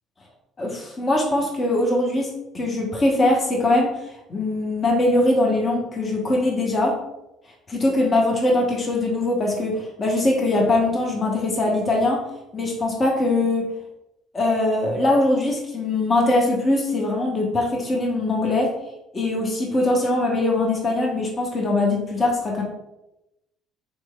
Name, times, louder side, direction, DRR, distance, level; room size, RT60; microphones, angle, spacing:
voice 1, 0.6-3.9 4.3-7.0 7.7-12.2 12.5-13.7 14.3-18.7 19.1-22.6, left 2 dB, 35° left, -1 dB, 0.9 m, -21 dB
4.2 x 3.1 x 2.2 m, 0.89 s
figure-of-eight pair, 55°, 0 cm